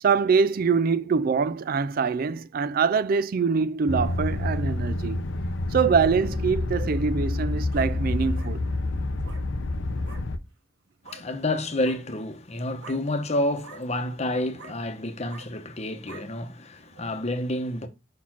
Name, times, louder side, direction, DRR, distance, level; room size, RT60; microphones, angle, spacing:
voice 1, 0.0-5.2 5.7-8.6, right 5 dB, 45° right, 0.4 m, -24 dB
sound 1, 3.9-10.4, left 2 dB, 75° left, 0.7 m, -28 dB
sound 2, 7.3-7.9 8.3-8.5 9.2-9.4 10.0-10.2 11.0-11.2 11.7-12.0 12.8-13.0 13.6-13.8 14.6-14.8 15.3-15.5 16.1-16.3, right 4 dB, 65° right, 1.5 m, -45 dB
voice 2, 11.0-17.9, left 1 dB, 35° left, 0.9 m, -29 dB
5.8 x 4.4 x 5.9 m
head